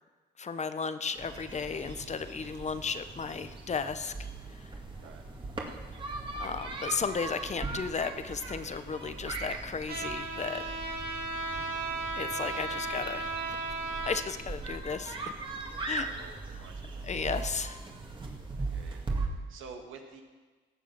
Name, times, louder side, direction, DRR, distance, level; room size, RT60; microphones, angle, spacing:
voice 1, 0.4-4.7 6.4-10.6 12.2-13.3 14.1-15.2 15.9-16.1 17.0-17.8, left 5 dB, 35° left, 11 dB, 0.9 m, -34 dB
sound 1, 1.2-19.3, right 3 dB, 25° right, 2.2 m, -39 dB
Trumpet, 9.9-14.2, right 3 dB, 50° right, 2.3 m, -35 dB
voice 2, 15.6-17.7 18.5-20.2, right 5 dB, 85° right, 3 dB, 1.9 m, -50 dB
18.0 x 7.0 x 6.0 m, 1.4 s
cardioid pair, 90°, 20 cm